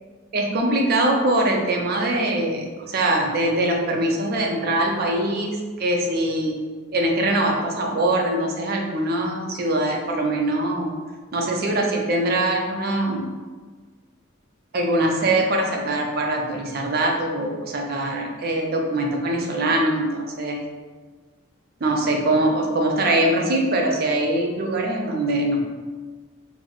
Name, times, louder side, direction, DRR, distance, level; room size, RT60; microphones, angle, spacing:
voice 1, 0.3-6.6 6.9-10.9 11.3-13.3 14.7-20.6 21.8-25.6, right 1 dB, 50° right, 1 dB, 0.5 m, -22 dB
3.9 x 2.0 x 3.0 m, 1.4 s
head